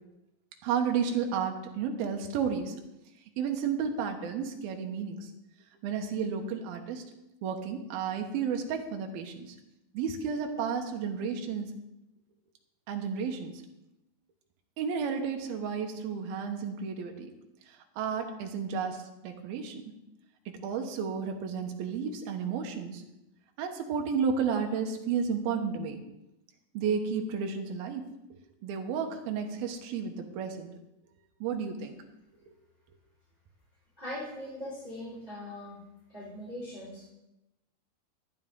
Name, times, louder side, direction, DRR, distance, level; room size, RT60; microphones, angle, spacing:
voice 1, 0.6-2.7 3.4-5.2 5.8-7.0 7.4-9.6 9.9-11.7 12.9-13.6 14.8-17.3 17.7-19.8 20.5-23.0 23.6-26.0 26.7-28.1 28.6-30.7 31.4-32.0, right 6 dB, 70° right, 4 dB, 2.8 m, -32 dB
voice 2, 34.0-35.8 36.1-37.1, left 1 dB, 10° left, -11 dB, 4.1 m, -40 dB
13.0 x 10.5 x 3.8 m, 0.93 s
omnidirectional pair, 4.8 m